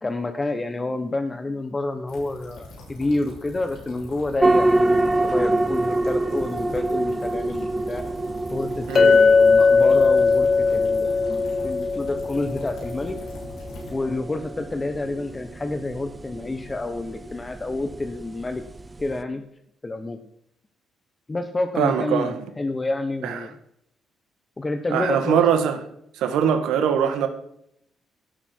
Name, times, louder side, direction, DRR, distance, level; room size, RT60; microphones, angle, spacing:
voice 1, 0.0-8.0 8.5-13.1 13.9-18.6 19.0-19.4 19.8-20.2 21.3-23.5 24.6-25.5, left 2 dB, 25° left, 1.0 m, -29 dB
sound 1, 2.1-13.9, left 1 dB, 90° left, 5.2 m, -42 dB
sound 2, 4.4-19.2, right 2 dB, 20° right, 0.6 m, -27 dB
voice 2, 8.9-9.2 21.8-22.4 23.2-23.5 24.9-25.8 26.2-27.3, right 8 dB, 85° right, 1.6 m, -22 dB
Chink clink, 9.0-13.2, left 4 dB, 40° left, 0.4 m, -19 dB
16.5 x 6.8 x 4.6 m
cardioid pair, 90°, 0 cm